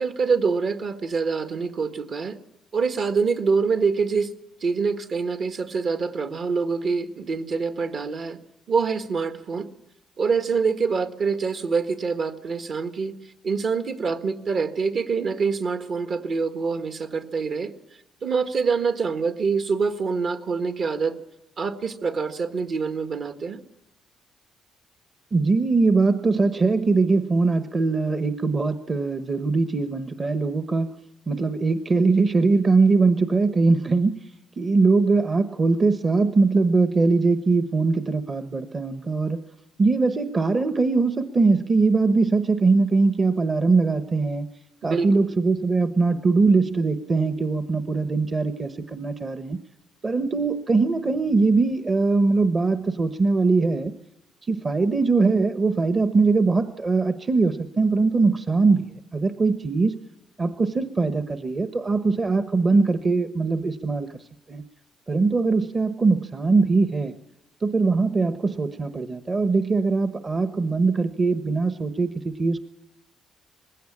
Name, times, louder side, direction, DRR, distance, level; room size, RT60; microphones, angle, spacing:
voice 1, 0.0-2.4 2.7-4.3 4.6-8.4 8.7-9.7 10.2-13.1 13.4-17.7 18.2-21.2 21.6-23.6 44.8-45.1, right 5 dB, 55° right, 8 dB, 1.5 m, -25 dB
voice 2, 25.3-30.9 31.3-34.2 34.6-39.4 39.8-44.5 44.8-49.6 50.0-53.9 54.5-60.0 60.4-64.2 64.5-64.6 65.1-67.1 67.6-72.6, right 3 dB, 35° right, 9 dB, 1.0 m, -21 dB
20.0 x 16.5 x 8.6 m, 0.87 s
cardioid pair, 90°, 0 cm